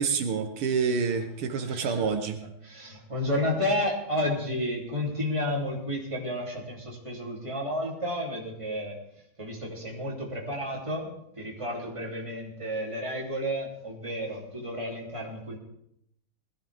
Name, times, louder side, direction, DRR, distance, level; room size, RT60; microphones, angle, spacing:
voice 1, 0.0-2.4, right 5 dB, 80° right, 6 dB, 2.0 m, -27 dB
voice 2, 1.6-9.0 9.4-15.6, left 1 dB, 15° right, -2 dB, 3.2 m, -32 dB
20.5 x 14.5 x 3.5 m, 0.73 s
omnidirectional pair, 2.3 m